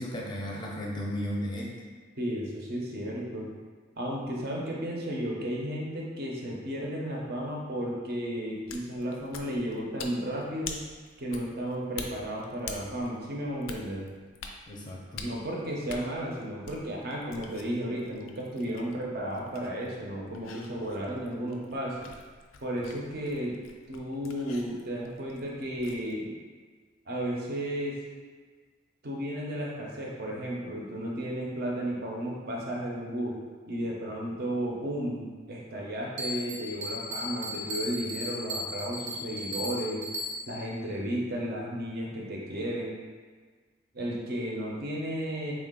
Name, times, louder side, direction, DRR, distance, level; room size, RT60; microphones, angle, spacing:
voice 1, 0.0-1.8 14.7-15.3, equal, 20° left, -3 dB, 0.5 m, -34 dB
voice 2, 2.2-3.5 4.0-10.8 11.2-14.1 15.2-22.1 22.6-23.6 23.9-26.3 27.1-28.0 29.0-33.4 33.7-40.1 40.5-42.9 43.9-45.5, equal, 50° right, -2 dB, 0.7 m, -33 dB
sound 1, 8.5-26.1, left 5 dB, 80° left, 0.4 m, -47 dB
Bell, 36.2-40.7, left 1 dB, 90° right, 0.7 m, -36 dB
3.6 x 2.4 x 3.7 m, 1.5 s
head